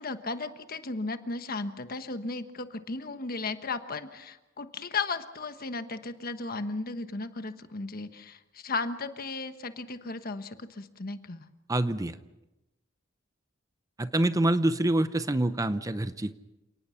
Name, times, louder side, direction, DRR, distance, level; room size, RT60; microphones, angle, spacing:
voice 1, 0.0-11.4, left 3 dB, 50° left, 9 dB, 1.3 m, -35 dB
voice 2, 11.7-12.2 14.0-16.4, right 1 dB, 15° right, 12 dB, 0.6 m, -26 dB
29.0 x 18.5 x 5.8 m, 0.99 s
head